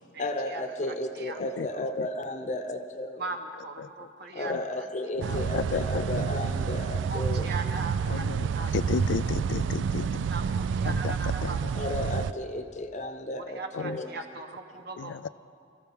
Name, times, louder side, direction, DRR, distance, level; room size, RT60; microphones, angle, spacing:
voice 1, 0.2-3.3 4.3-7.6 11.7-14.2, left 1 dB, 40° left, 7 dB, 0.8 m, -33 dB
voice 2, 0.9-1.4 3.2-4.5 5.2-5.4 7.1-8.7 10.2-11.8 13.4-15.3, right 3 dB, 60° right, 5 dB, 1.1 m, -39 dB
sound 1, 5.2-12.3, right 6 dB, 80° right, 0.3 m, -29 dB
voice 3, 5.3-6.3 8.1-8.5 8.7-10.3 10.8-11.6 13.7-14.0 15.0-15.3, left 6 dB, 80° left, 18 dB, 0.3 m, -33 dB
21.5 x 14.5 x 3.7 m, 2.4 s
head